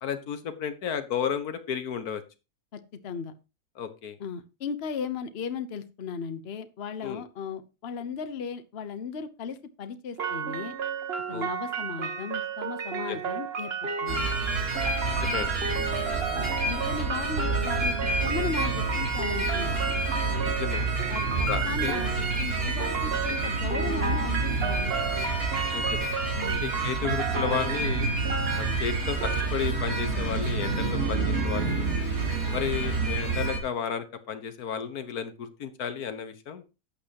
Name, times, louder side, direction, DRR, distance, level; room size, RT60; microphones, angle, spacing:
voice 1, 0.0-2.2 3.8-4.2 7.0-7.2 11.3-11.5 13.1-13.2 15.2-15.6 20.4-20.9 21.5-22.0 25.7-26.1 26.6-28.1 28.6-31.9 32.5-36.6, left 7 dB, 90° left, 10 dB, 1.7 m, -33 dB
voice 2, 2.7-3.3 4.2-10.7 11.3-14.3 16.3-17.9 18.2-19.8 21.1-24.9 26.3-26.6, left 6 dB, 50° left, 11 dB, 1.1 m, -36 dB
sound 1, 10.2-29.5, right 5 dB, 45° right, 1.3 m, -33 dB
sound 2, 14.1-33.6, right 3 dB, 70° right, 4.1 m, -28 dB
12.0 x 8.8 x 2.9 m, 0.29 s
omnidirectional pair, 1.5 m